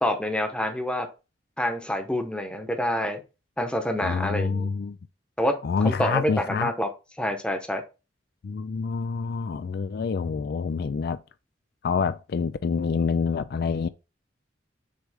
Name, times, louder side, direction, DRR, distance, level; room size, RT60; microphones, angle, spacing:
voice 1, 0.0-1.1 1.6-3.2 3.6-4.7 5.4-6.9 7.2-7.8, equal, 5° left, 0.9 m, -27 dB
voice 2, 4.0-5.0 5.6-6.7 8.4-11.2 11.8-13.9, left 5 dB, 60° left, 0.4 m, -27 dB
6.4 x 3.2 x 4.9 m
head